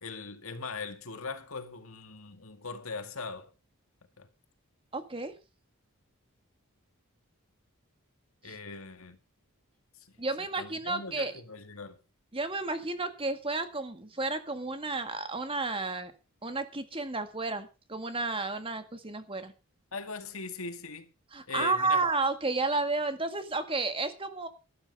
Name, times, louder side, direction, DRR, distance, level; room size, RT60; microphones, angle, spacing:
voice 1, 0.0-3.5 4.2-4.3 8.4-9.2 9.9-12.0 19.9-21.1 21.5-22.0, left 4 dB, 75° left, 2.1 m, -40 dB
voice 2, 4.9-5.3 8.4-8.5 10.2-11.3 12.3-16.1 16.4-19.5 21.3-24.5, right 3 dB, 25° right, 1.8 m, -32 dB
12.5 x 12.5 x 5.4 m
head